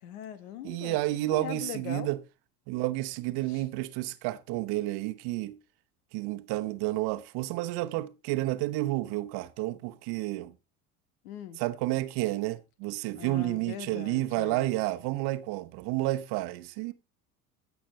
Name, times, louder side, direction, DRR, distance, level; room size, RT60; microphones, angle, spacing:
voice 1, 0.0-1.0 1.3-2.1 3.4-3.7 11.2-11.6 13.1-14.7, left 9 dB, 75° left, 1.4 m, -41 dB
voice 2, 0.6-2.2 2.7-5.6 6.1-10.5 11.6-16.9, right 17 dB, 55° right, 1.0 m, -30 dB
16.0 x 6.1 x 3.2 m
hypercardioid pair, 70°, 45 cm